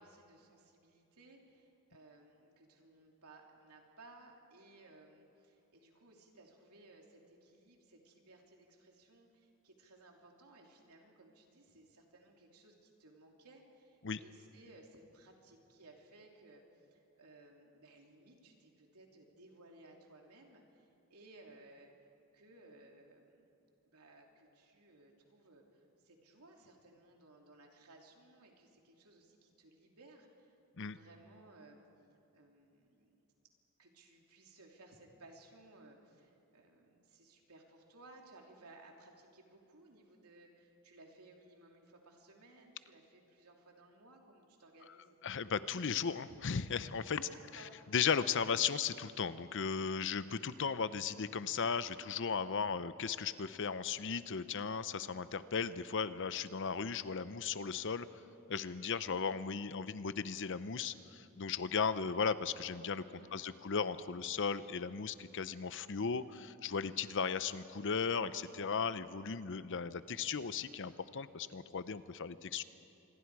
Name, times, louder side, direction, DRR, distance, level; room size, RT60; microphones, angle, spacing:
voice 1, 0.0-23.5 23.8-31.8 32.3-33.2 33.8-45.2 47.3-47.9 63.1-63.5, right 2 dB, 85° right, 1 dB, 3.0 m, -60 dB
voice 2, 45.2-47.6 47.9-58.1 58.5-72.6, left 6 dB, 55° left, 14 dB, 0.7 m, -36 dB
27.0 x 21.5 x 4.8 m, 2.8 s
head